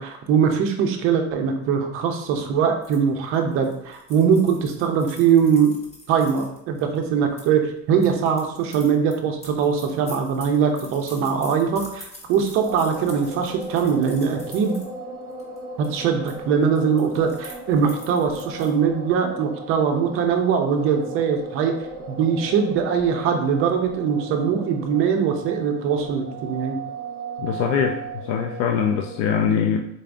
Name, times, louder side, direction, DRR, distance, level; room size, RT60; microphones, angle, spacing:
voice 1, 0.0-5.7 6.1-14.8 15.8-21.7 22.1-26.8, right 7 dB, 35° right, 4 dB, 0.4 m, -21 dB
sound 1, 2.8-7.5 8.0-14.9 15.3-15.6 15.8-16.4 16.6-18.7, left 1 dB, 15° left, 0.7 m, -46 dB
sound 2, 12.6-29.3, right 3 dB, 20° right, 0.8 m, -37 dB
voice 2, 27.4-29.9, left 7 dB, 80° left, 3 dB, 0.5 m, -23 dB
3.9 x 3.4 x 2.5 m, 0.80 s
cardioid pair, 165°, 38 cm